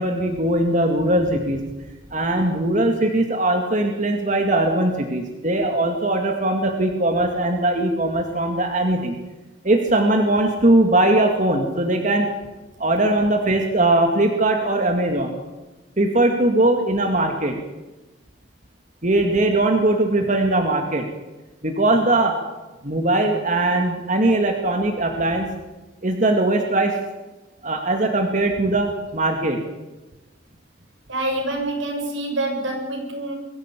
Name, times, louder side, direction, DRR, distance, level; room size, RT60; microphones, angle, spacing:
voice 1, 0.0-1.6 2.1-9.2 9.6-12.3 12.8-15.4 16.0-17.6 19.0-21.1 21.6-22.4 22.8-25.5 26.0-27.0 27.6-29.6, right 2 dB, 40° right, 3 dB, 2.2 m, -20 dB
voice 2, 31.1-33.4, right 1 dB, 90° right, 2 dB, 7.0 m, -26 dB
23.0 x 15.0 x 8.5 m, 1.1 s
head